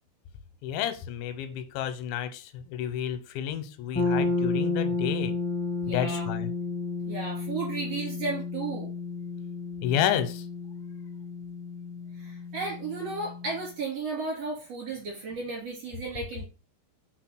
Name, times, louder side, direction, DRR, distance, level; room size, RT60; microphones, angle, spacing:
voice 1, 0.6-5.3 5.9-6.5 9.8-10.5, left 10 dB, 90° left, 10 dB, 3.1 m, -30 dB
sound 1, 3.9-13.7, left 3 dB, 15° left, 0.4 m, -32 dB
voice 2, 5.9-6.3 7.1-8.9 12.2-16.5, right 4 dB, 45° right, -4 dB, 2.7 m, -34 dB
6.0 x 4.0 x 4.5 m, 0.33 s
omnidirectional pair, 5.1 m